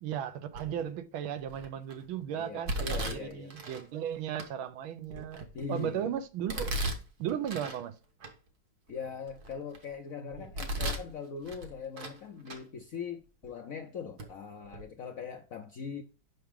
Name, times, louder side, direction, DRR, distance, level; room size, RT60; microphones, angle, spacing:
voice 1, 0.0-6.8 7.2-7.9, right 9 dB, 80° right, 1.6 m, -36 dB
Domestic sounds home sounds, 0.5-0.9 1.5-1.9 2.7-3.8 4.4-4.5 5.1-5.8 6.5-7.8 8.2-8.3 8.9-9.8 10.3-11.1 11.5-12.2 12.5-12.6 13.4-13.5 14.2-14.3 14.6-14.8, right 1 dB, 55° right, 1.6 m, -36 dB
voice 2, 2.3-3.6 5.5-6.2 8.9-16.0, left 6 dB, 65° left, 0.8 m, -41 dB
6.7 x 5.8 x 3.6 m
omnidirectional pair, 2.2 m